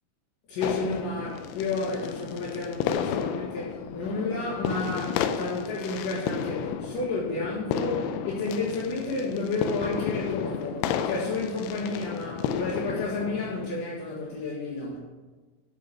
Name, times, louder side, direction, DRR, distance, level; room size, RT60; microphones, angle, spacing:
voice 1, 0.5-15.0, left 3 dB, 60° left, -7 dB, 2.9 m, -31 dB
sound 1, 0.6-13.7, left 8 dB, 80° left, 2.5 m, -32 dB
8.2 x 6.8 x 6.0 m, 1.3 s
omnidirectional pair, 4.9 m